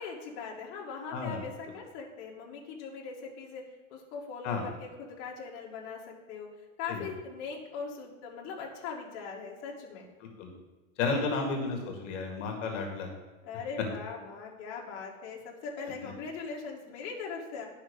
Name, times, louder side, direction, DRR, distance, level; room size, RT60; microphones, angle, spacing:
voice 1, 0.0-3.6 3.9-6.5 6.8-10.1 11.1-11.3 13.4-17.7, left 5 dB, 40° left, -2 dB, 2.0 m, -40 dB
voice 2, 1.1-1.4 4.4-4.6 6.9-7.1 10.2-10.5 11.0-13.1 16.0-16.1, left 4 dB, 60° left, 2 dB, 1.9 m, -32 dB
11.0 x 5.7 x 5.2 m, 1.3 s
supercardioid pair, 145°, 42 cm